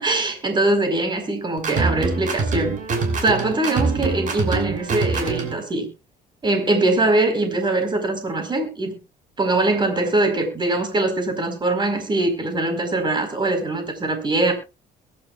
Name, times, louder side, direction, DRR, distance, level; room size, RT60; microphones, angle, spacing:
voice 1, 0.0-2.8 3.2-5.9 6.4-9.0 9.4-14.5, right 2 dB, 25° right, 4.7 m, -22 dB
sound 1, 1.6-5.6, right 4 dB, 50° right, 5.2 m, -24 dB
22.0 x 11.5 x 2.5 m
cardioid pair, 110°, 17 cm